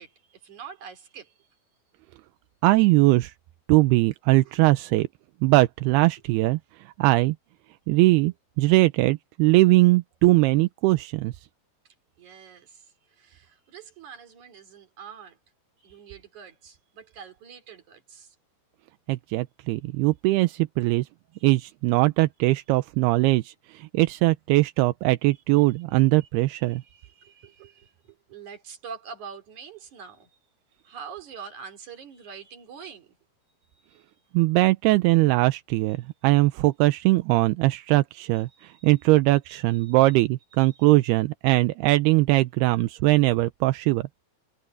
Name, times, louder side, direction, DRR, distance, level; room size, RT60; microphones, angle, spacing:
voice 1, 0.0-1.5 4.4-4.8 12.2-15.4 15.8-18.4 21.3-21.6 25.3-30.3 30.8-33.2 33.7-34.0 38.5-38.9 39.5-40.2 40.6-40.9, right 6 dB, 50° right, 4.4 m, -45 dB
voice 2, 2.6-3.3 3.7-5.1 5.4-6.6 7.0-7.4 7.9-11.3 19.1-21.1 21.4-26.8 34.3-36.0 36.2-38.5 38.8-44.1, right 20 dB, 85° right, 2.6 m, -21 dB
omnidirectional pair, 4.7 m